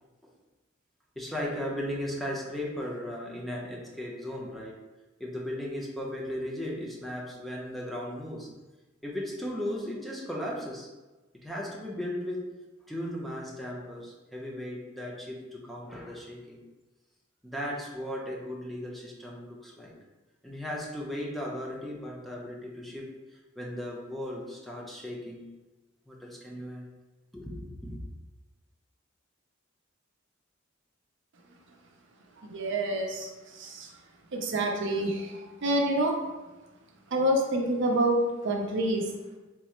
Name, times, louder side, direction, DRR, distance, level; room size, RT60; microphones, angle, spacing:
voice 1, 1.2-4.8 5.2-8.5 9.0-10.9 11.4-12.5 12.9-16.6 17.4-19.9 20.4-23.1 23.6-25.5 26.1-26.9 27.3-28.0, left 1 dB, ahead, -3 dB, 0.6 m, -36 dB
voice 2, 32.4-33.3 33.6-33.9 34.3-36.1 37.1-39.1, right 1 dB, 65° right, 1 dB, 0.5 m, -27 dB
3.6 x 2.0 x 4.3 m, 1.1 s
head